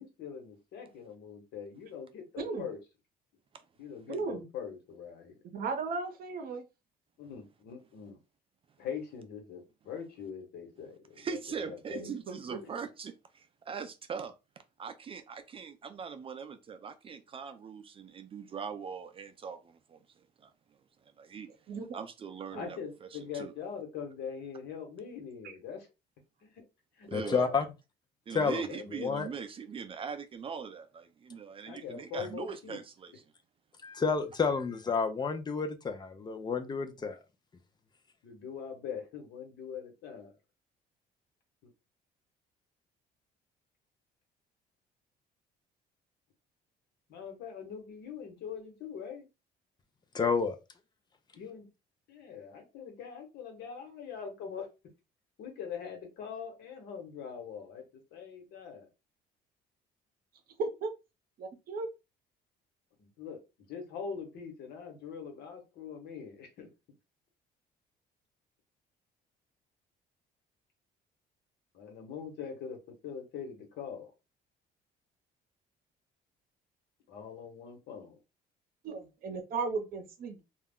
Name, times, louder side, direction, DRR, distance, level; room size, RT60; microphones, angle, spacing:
voice 1, 0.0-2.8 3.8-5.3 7.2-8.2 8.8-12.1 12.6-12.7 22.5-25.9 26.4-26.6 27.0-27.5 28.5-28.8 31.6-32.8 36.8-37.0 38.2-40.3 47.1-49.3 51.3-51.7 52.1-54.7 55.4-57.9 58.1-58.8 63.0-63.4 63.7-66.7 71.7-72.8 73.0-74.1 77.1-78.2, left 7 dB, 75° left, 1.0 m, -42 dB
voice 2, 4.1-4.5 5.4-6.6 11.9-12.6 21.7-22.0 22.5-22.7 60.6-60.9 61.4-61.9 78.8-80.4, right 4 dB, 60° right, 0.7 m, -36 dB
voice 3, 11.2-14.3 14.8-20.0 20.4-20.5 21.2-21.5 21.9-23.5 27.1-27.4 28.3-33.2, right 6 dB, 35° right, 0.4 m, -41 dB
voice 4, 27.1-27.7 28.3-29.3 31.9-32.3 33.8-37.2 50.1-50.6, left 5 dB, 25° left, 0.4 m, -30 dB
2.3 x 2.0 x 3.5 m
cardioid pair, 110°, 17 cm